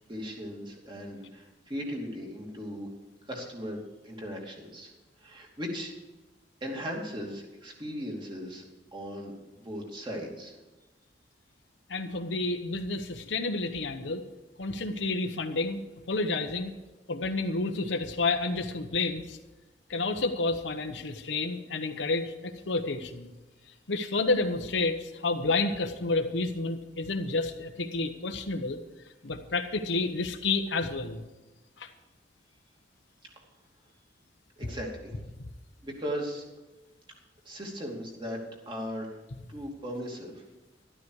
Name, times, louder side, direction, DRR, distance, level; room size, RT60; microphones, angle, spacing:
voice 1, 0.1-2.9 3.3-4.9 5.2-5.9 6.6-8.7 8.9-9.3 9.6-10.5 34.6-35.1 35.8-36.4 37.4-38.4 38.7-39.2 39.5-40.4, equal, 25° right, 0 dB, 2.8 m, -37 dB
voice 2, 11.9-14.2 14.6-15.8 16.1-16.7 17.1-19.4 19.9-23.3 23.9-28.8 29.2-31.2 31.8-31.9 35.4-35.5, left 3 dB, 85° left, 5 dB, 1.1 m, -30 dB
12.5 x 12.5 x 4.8 m, 1.1 s
head